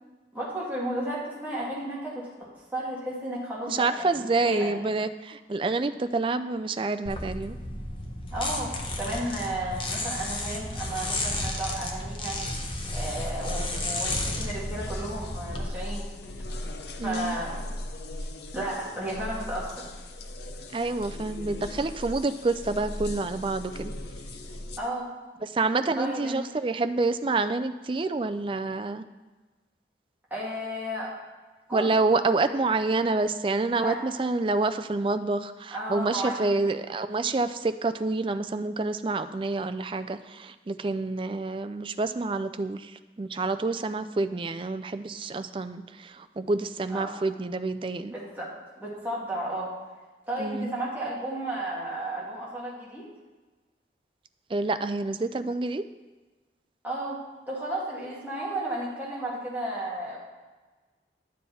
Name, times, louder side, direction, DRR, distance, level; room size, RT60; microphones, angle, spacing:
voice 1, 0.3-2.3 2.7-4.7 8.3-8.7 9.0-12.4 12.9-16.1 17.0-17.6 18.5-19.9 24.8-25.1 26.0-26.4 30.3-31.1 31.7-31.9 33.8-34.0 35.7-36.5 46.9-47.1 48.1-48.5 48.8-49.7 50.3-53.1 56.8-57.2 57.5-60.2, right 1 dB, 10° right, -6 dB, 2.4 m, -33 dB
voice 2, 3.7-7.6 17.0-17.4 20.7-23.9 25.4-29.0 31.7-48.2 50.4-50.7 54.5-55.8, right 3 dB, 30° right, 10 dB, 0.4 m, -28 dB
sound 1, 7.1-15.6, left 2 dB, 30° left, 1.0 m, -33 dB
sound 2, 12.8-24.8, left 1 dB, 70° left, 0.7 m, -38 dB
11.5 x 7.5 x 4.2 m, 1.3 s
head